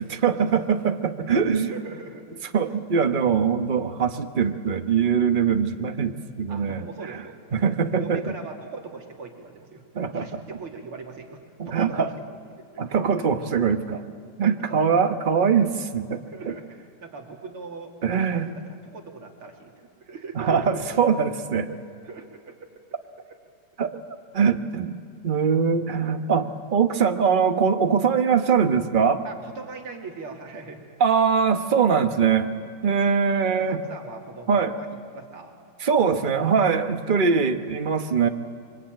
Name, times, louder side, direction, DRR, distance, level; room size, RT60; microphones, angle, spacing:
voice 1, 0.0-1.7 2.5-6.1 6.4-6.9 7.5-8.2 9.9-10.3 11.6-12.1 12.8-14.0 14.4-16.5 18.0-18.5 20.4-21.7 23.8-23.9 24.3-25.0 25.2-29.2 31.0-32.5 32.8-33.8 34.5-34.7 35.8-38.3, right 6 dB, 35° right, 7 dB, 0.8 m, -22 dB
voice 2, 1.3-2.3 6.5-7.4 8.0-9.8 10.1-12.4 12.7-12.8 14.4-14.6 16.2-19.7 20.0-20.9 21.7-22.7 23.2-23.4 29.2-31.0 31.8-32.0 32.5-32.7 33.6-35.6, right 4 dB, 75° right, 2 dB, 3.4 m, -40 dB
26.0 x 24.0 x 9.0 m, 2.3 s
omnidirectional pair, 2.4 m